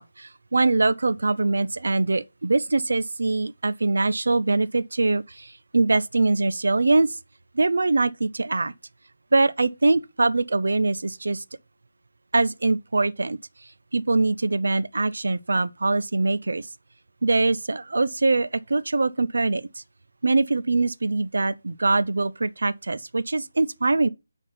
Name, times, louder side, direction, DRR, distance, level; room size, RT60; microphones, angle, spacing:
voice 1, 0.0-7.2 7.5-8.7 9.3-11.4 12.3-13.4 13.9-16.7 17.2-19.7 20.2-24.1, right 3 dB, 80° right, 0.6 m, -23 dB
9.3 x 3.6 x 5.8 m
figure-of-eight pair, 170°, 0 cm